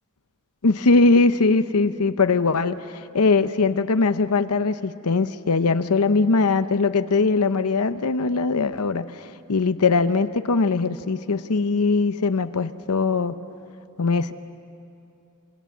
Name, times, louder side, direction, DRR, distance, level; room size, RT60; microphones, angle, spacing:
voice 1, 0.6-9.2 9.5-13.4 14.0-14.3, left 3 dB, 85° left, 11 dB, 0.8 m, -21 dB
27.5 x 25.0 x 7.3 m, 2.6 s
head